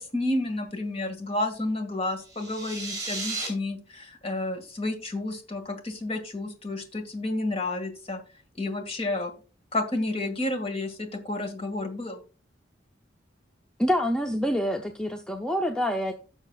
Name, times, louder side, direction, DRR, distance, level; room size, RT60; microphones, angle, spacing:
voice 1, 0.0-8.2 8.6-9.3 9.7-12.2, left 2 dB, 30° left, 5 dB, 1.8 m, -31 dB
sound 1, 2.2-3.5, right 3 dB, 20° right, 5.3 m, -34 dB
voice 2, 13.8-16.1, equal, 5° left, 4 dB, 0.6 m, -26 dB
15.5 x 6.4 x 2.3 m, 0.36 s
head